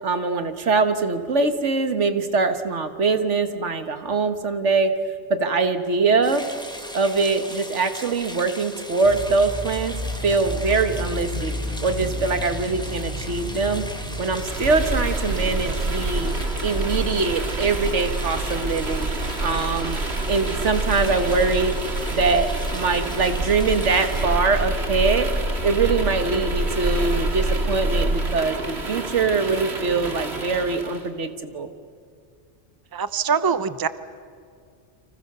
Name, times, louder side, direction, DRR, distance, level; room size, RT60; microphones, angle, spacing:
voice 1, 0.0-4.9 5.3-6.4 6.9-10.0 10.2-11.5 11.8-13.8 14.2-16.3 16.6-19.1 19.4-21.7 22.1-25.3 25.6-31.7, right 4 dB, 85° right, 8 dB, 1.8 m, -23 dB
sound 1, 6.2-24.3, equal, 5° left, 2.0 m, -39 dB
sound 2, 9.0-19.0, equal, 45° right, 6.7 m, -33 dB
sound 3, 14.4-31.1, right 2 dB, 65° right, 2.4 m, -27 dB
voice 2, 32.9-33.9, right 6 dB, 20° right, 13 dB, 0.7 m, -23 dB
29.5 x 25.5 x 6.8 m, 2.2 s
omnidirectional pair, 1.2 m